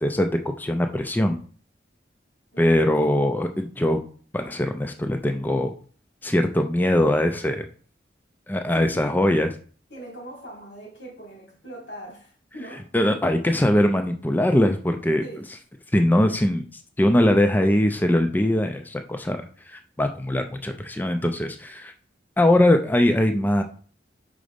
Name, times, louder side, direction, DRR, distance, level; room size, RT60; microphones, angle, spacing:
voice 1, 0.0-1.4 2.6-4.0 4.3-5.7 6.2-7.7 8.5-9.5 12.9-15.2 15.9-16.6 17.0-21.9 22.4-23.6, left 1 dB, 10° left, 0.4 m, -21 dB
voice 2, 2.5-2.9 8.7-9.2 9.9-13.3 15.2-15.5, right 1 dB, 90° left, 3.0 m, -41 dB
5.1 x 3.9 x 5.1 m
head